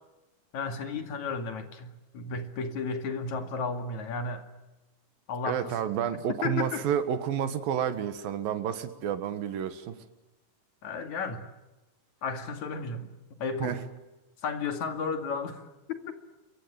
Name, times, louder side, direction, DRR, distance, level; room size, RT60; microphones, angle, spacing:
voice 1, 0.5-4.4 5.3-5.8 6.3-6.8 10.8-11.4 12.2-13.8 14.4-15.6 15.9-16.1, left 4 dB, 60° left, 7 dB, 3.4 m, -33 dB
voice 2, 5.4-10.0 13.6-13.8, right 9 dB, 85° right, 10 dB, 3.3 m, -30 dB
26.5 x 23.5 x 9.1 m, 1.0 s
omnidirectional pair, 4.0 m